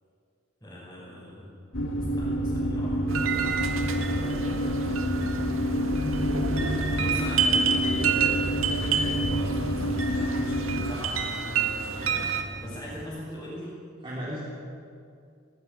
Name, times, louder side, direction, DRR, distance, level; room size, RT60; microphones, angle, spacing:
voice 1, 0.6-1.6 2.1-3.6 6.5-13.7, equal, 15° left, -9 dB, 6.0 m, -40 dB
sound 1, 1.7-10.9, equal, 70° left, 2.1 m, -28 dB
sound 2, 3.1-12.4, right 6 dB, 80° right, 1.9 m, -29 dB
voice 2, 3.8-5.0 14.0-14.4, equal, 20° right, -8 dB, 3.6 m, -38 dB
sound 3, 6.7-13.1, equal, 45° right, 2.7 m, -42 dB
19.5 x 16.0 x 9.9 m, 2.4 s
head